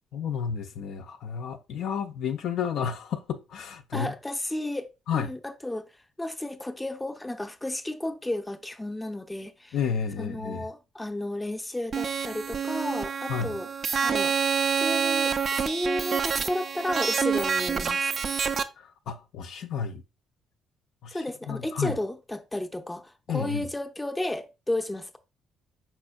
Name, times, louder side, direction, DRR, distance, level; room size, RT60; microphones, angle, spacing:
voice 1, 0.1-4.1 5.1-5.3 9.7-10.7 13.3-13.6 18.8-20.0 21.0-22.0 23.3-23.6, left 7 dB, 70° left, 0.4 m, -31 dB
voice 2, 3.9-5.9 6.2-9.8 10.2-13.7 14.0-14.3 14.8-18.1 21.1-25.2, left 1 dB, 10° left, 0.5 m, -33 dB
sound 1, 11.9-18.6, right 6 dB, 50° right, 0.3 m, -27 dB
4.3 x 4.2 x 2.3 m
supercardioid pair, 65°, 0 cm